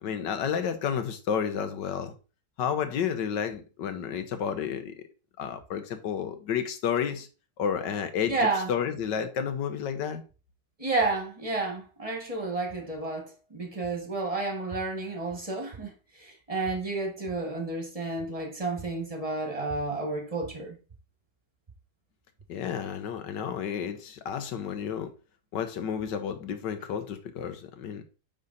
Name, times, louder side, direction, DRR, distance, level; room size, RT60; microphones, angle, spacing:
voice 1, 0.0-2.1 2.6-4.9 5.4-7.3 7.6-10.2 22.5-25.1 25.5-28.0, left 8 dB, 85° left, 1.6 m, -31 dB
voice 2, 8.3-8.7 10.8-15.9 16.2-20.8, right 3 dB, 20° right, 1.6 m, -31 dB
9.1 x 4.0 x 4.1 m
omnidirectional pair, 1.9 m